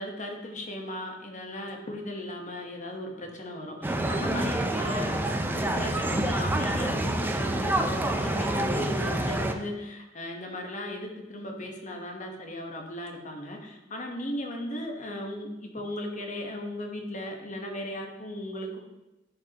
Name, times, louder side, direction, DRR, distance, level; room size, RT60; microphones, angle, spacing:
voice 1, 0.0-5.2 5.5-18.8, left 1 dB, 40° left, 2 dB, 1.1 m, -37 dB
sound 1, 3.8-9.5, right 1 dB, 10° right, 0.5 m, -27 dB
10.5 x 5.2 x 2.9 m, 1.0 s
head